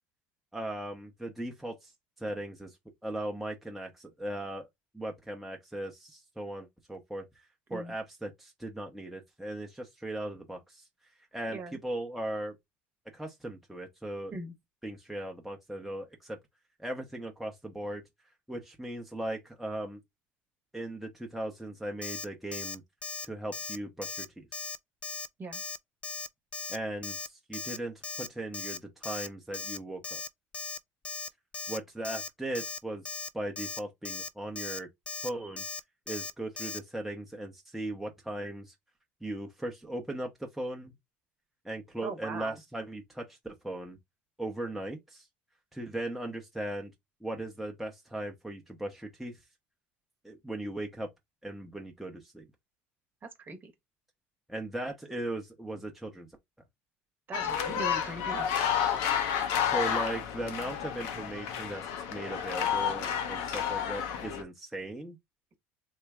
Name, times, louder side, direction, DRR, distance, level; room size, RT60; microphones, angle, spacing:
voice 1, 0.5-1.9 2.2-2.8 3.0-4.7 4.9-7.2 7.7-10.8 11.3-12.5 13.1-14.3 14.8-16.4 16.8-18.0 18.5-20.0 20.7-22.8 23.2-24.5 26.7-30.2 31.7-34.9 35.2-35.6 36.1-38.7 39.2-40.9 41.6-44.0 44.4-45.2 45.7-46.9 47.2-49.3 50.2-51.1 51.4-52.4 54.5-56.3 59.6-65.2, right 1 dB, ahead, 0.8 m, -38 dB
Alarm, 22.0-22.3 22.5-22.8 23.0-23.3 23.5-23.8 24.0-24.3 24.5-24.8 25.0-25.3 25.5-25.8 26.0-26.3 26.5-26.8 27.0-27.3 27.5-27.8 28.0-28.3 28.5-28.8 29.0-29.3 29.5-29.8 30.0-30.3 30.5-30.8 31.0-31.3 31.5-31.8 32.0-32.3 32.5-32.8 33.1-33.3 33.6-33.8 34.1-34.3 34.6-34.8 35.1-35.3 35.6-35.8 36.1-36.3 36.6-36.8, left 5 dB, 20° left, 0.4 m, -38 dB
voice 2, 42.0-42.6 53.4-53.7 57.3-58.5, right 3 dB, 35° right, 1.1 m, -40 dB
sound 1, 57.3-64.4, left 8 dB, 75° left, 0.7 m, -31 dB
3.1 x 2.2 x 3.4 m
hypercardioid pair, 80°, 6 cm